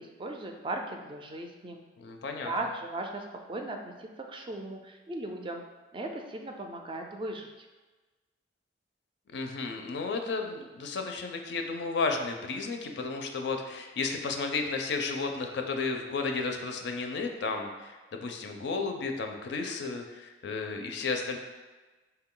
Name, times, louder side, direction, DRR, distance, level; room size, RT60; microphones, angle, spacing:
voice 1, 0.0-1.8 2.4-5.6 5.9-7.5, right 2 dB, 30° right, 3 dB, 0.3 m, -37 dB
voice 2, 2.0-2.5 9.3-21.4, left 4 dB, 65° left, 4 dB, 0.4 m, -33 dB
4.2 x 2.2 x 3.7 m, 1.2 s
head